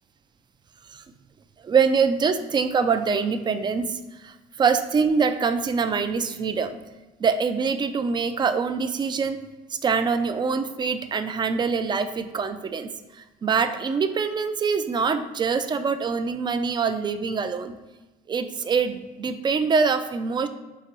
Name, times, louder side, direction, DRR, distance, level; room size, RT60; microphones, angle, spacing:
voice 1, 1.6-6.7 7.2-9.4 9.8-12.9 13.4-17.7 18.3-20.5, right 5 dB, 25° right, 9 dB, 0.3 m, -24 dB
4.7 x 2.9 x 2.9 m, 1.2 s
cardioid pair, 110°, 17 cm